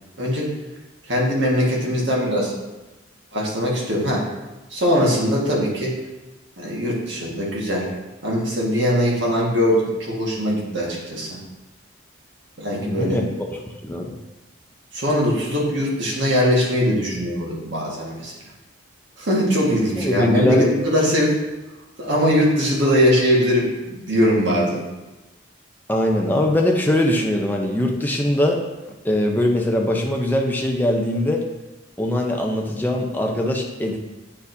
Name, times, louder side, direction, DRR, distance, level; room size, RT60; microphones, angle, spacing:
voice 1, 0.2-0.5 1.0-2.5 3.3-4.3 4.7-5.9 6.6-7.9 8.2-11.3 12.6-13.2 14.9-18.3 19.2-21.3 22.0-24.8, equal, 60° right, -4 dB, 1.6 m, -21 dB
voice 2, 12.8-13.3 13.8-14.1 20.0-20.7 25.9-28.6 29.0-31.4 32.0-34.0, left 1 dB, 10° left, 0 dB, 0.5 m, -21 dB
8.5 x 4.4 x 2.7 m, 1.1 s
head